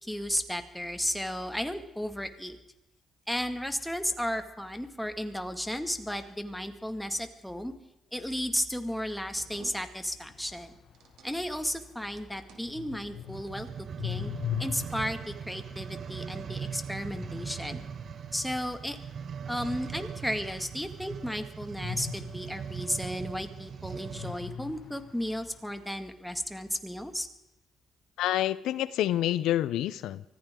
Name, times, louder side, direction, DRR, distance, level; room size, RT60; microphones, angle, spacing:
voice 1, 0.0-2.6 3.3-7.7 8.1-10.8 11.2-13.7 14.0-14.3 14.6-17.8 18.3-19.0 19.5-27.3, equal, 5° left, 7 dB, 2.0 m, -34 dB
sound 1, 8.7-11.9 12.2-13.6, right 7 dB, 85° right, 2.7 m, -57 dB
sound 2, 10.2-20.5 21.8-23.7 24.1-25.7, left 10 dB, 65° left, 1.1 m, -42 dB
sound 3, 13.2-24.5 25.1-25.2, right 7 dB, 55° right, 0.5 m, -40 dB
voice 2, 28.2-30.2, left 13 dB, 85° left, 16 dB, 0.6 m, -28 dB
24.5 x 15.0 x 3.8 m, 0.90 s
cardioid pair, 90°, 0 cm